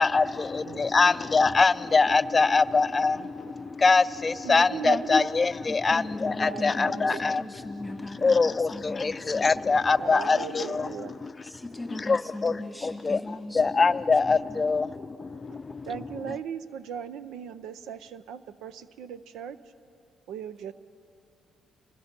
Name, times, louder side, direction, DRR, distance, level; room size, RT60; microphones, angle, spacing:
voice 1, 0.0-7.4 8.2-10.9 11.2-11.3 12.1-12.5 12.8-13.2 13.5-15.9, left 4 dB, 30° left, 0.5 m, -23 dB
voice 2, 4.4-5.3 6.4-7.2 10.0-11.2 14.8-14.9 15.5-15.6 15.9-19.6 20.3-20.7, right 8 dB, 85° right, 0.6 m, -38 dB
voice 3, 5.7-10.8 11.2-13.8 14.3-14.6, left 1 dB, 5° left, 1.4 m, -39 dB
27.0 x 19.5 x 5.9 m
cardioid pair, 90°, 0 cm